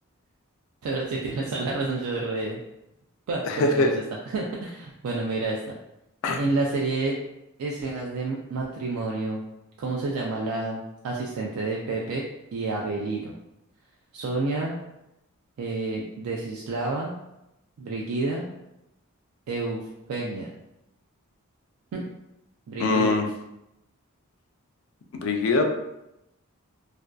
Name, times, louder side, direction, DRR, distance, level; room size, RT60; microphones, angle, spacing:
voice 1, 0.8-2.6 3.3-3.9 4.3-5.7 6.4-7.2 7.6-9.4 9.8-12.2 12.5-13.3 14.1-14.8 15.6-17.1 17.8-18.5 19.5-20.5 21.9-22.0 22.7-23.1, right 3 dB, 80° right, -2 dB, 0.3 m, -29 dB
voice 2, 3.4-3.9 6.2-6.4 22.8-23.2 25.1-25.6, left 3 dB, 65° left, 4 dB, 0.3 m, -22 dB
2.5 x 2.2 x 2.3 m, 0.88 s
head